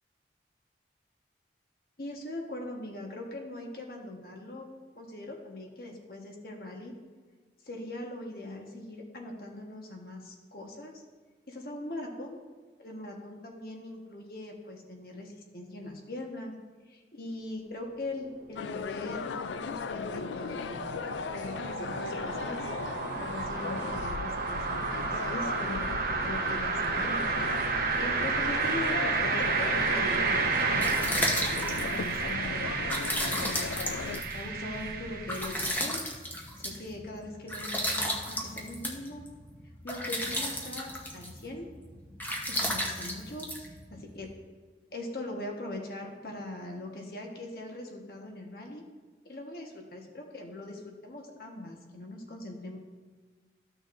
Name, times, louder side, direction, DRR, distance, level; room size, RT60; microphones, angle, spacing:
voice 1, 2.0-4.7 4.9-6.9 7.6-11.0 11.5-12.4 12.8-16.5 16.9-20.8 21.2-22.7 23.2-25.9 26.2-27.5 27.9-33.5 34.3-36.0 36.6-39.2 39.8-41.7 42.5-44.3 44.9-48.8 49.2-52.8, left 1 dB, 55° left, 1 dB, 1.3 m, -41 dB
sound 1, 18.1-35.7, right 4 dB, 55° right, 1.0 m, -31 dB
sound 2, 18.6-34.2, left 5 dB, 85° left, 0.4 m, -38 dB
sound 3, 30.4-44.3, equal, 10° left, 0.9 m, -34 dB
14.0 x 6.2 x 2.6 m, 1.5 s
head